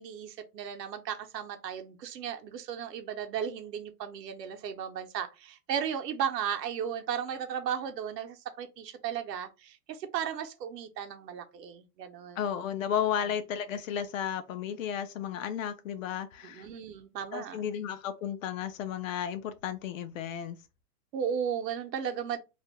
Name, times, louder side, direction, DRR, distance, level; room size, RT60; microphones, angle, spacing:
voice 1, 0.0-12.4 16.4-17.6 21.1-22.4, right 8 dB, 85° right, 0.7 m, -35 dB
voice 2, 12.4-16.7 17.3-20.6, left 9 dB, 55° left, 0.5 m, -33 dB
2.4 x 2.1 x 2.9 m
hypercardioid pair, 155°, 48 cm